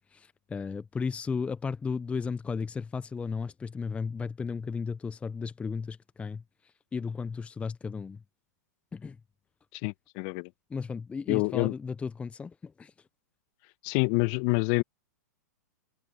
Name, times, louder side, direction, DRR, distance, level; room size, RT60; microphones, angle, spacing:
voice 1, 0.1-8.2 8.9-9.2 10.7-12.9, left 5 dB, 15° left, 0.8 m, -35 dB
voice 2, 9.7-10.5 11.3-11.7 13.8-14.8, left 30 dB, 45° left, 1.6 m, -27 dB
hypercardioid pair, 105°, 9 cm